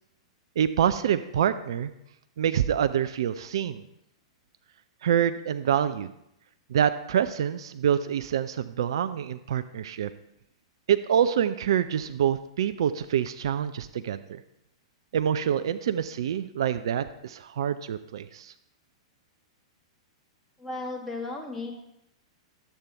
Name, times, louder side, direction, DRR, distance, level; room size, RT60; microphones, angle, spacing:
voice 1, 0.6-1.9 2.4-3.9 5.0-6.1 6.7-10.1 10.9-14.4 15.1-18.5, right 9 dB, 55° right, 11 dB, 0.4 m, -26 dB
voice 2, 20.6-21.7, left 2 dB, 5° left, -2 dB, 1.8 m, -34 dB
11.5 x 8.1 x 3.4 m, 0.81 s
figure-of-eight pair, 105°, 3 cm